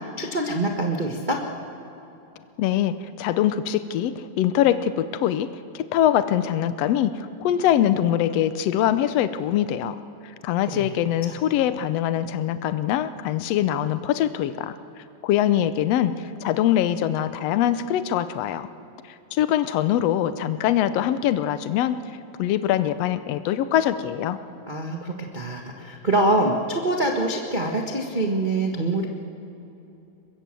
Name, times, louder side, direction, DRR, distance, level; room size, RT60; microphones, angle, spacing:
voice 1, 0.0-1.4 10.7-10.9 24.7-29.1, right 2 dB, 85° right, 1 dB, 0.4 m, -25 dB
voice 2, 2.6-5.5 5.7-10.0 10.4-14.8 15.2-18.7 19.0-22.0 22.4-24.4, left 11 dB, 80° left, 12 dB, 1.4 m, -23 dB
23.0 x 21.5 x 7.6 m, 3.0 s
omnidirectional pair, 3.9 m